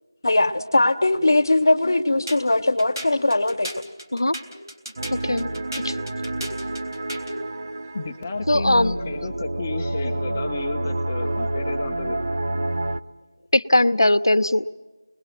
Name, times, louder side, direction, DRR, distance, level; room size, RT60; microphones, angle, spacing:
voice 1, 0.2-3.7, left 2 dB, 55° left, 11 dB, 1.0 m, -20 dB
sound 1, 2.3-7.4, equal, 70° right, 3.6 m, -37 dB
sound 2, 5.0-13.0, right 1 dB, 50° right, 0.7 m, -28 dB
voice 2, 7.9-12.2, left 3 dB, 20° left, 5 dB, 0.7 m, -32 dB
voice 3, 8.5-8.9 10.0-10.1 13.5-14.7, left 1 dB, 75° left, 13 dB, 0.8 m, -19 dB
29.5 x 20.5 x 5.9 m, 1.3 s
figure-of-eight pair, 170°, 2 cm